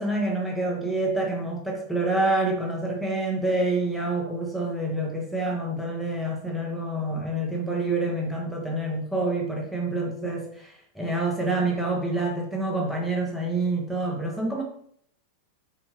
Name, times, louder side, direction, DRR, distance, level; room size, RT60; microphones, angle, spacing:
voice 1, 0.0-14.6, right 2 dB, ahead, -1 dB, 0.8 m, -27 dB
3.4 x 2.6 x 3.0 m, 0.65 s
figure-of-eight pair, 90°, 0 cm